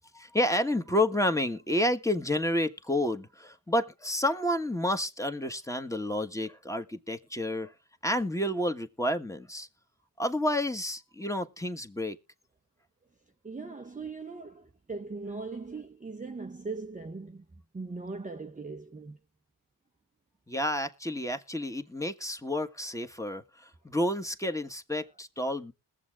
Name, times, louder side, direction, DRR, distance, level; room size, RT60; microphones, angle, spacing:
voice 1, 0.1-7.7 8.0-9.7 10.2-12.2 20.5-25.7, left 1 dB, 5° left, 1.3 m, -30 dB
voice 2, 13.4-19.2, right 3 dB, 20° right, 0.7 m, -40 dB
21.0 x 7.3 x 2.4 m
supercardioid pair, 45°, 42 cm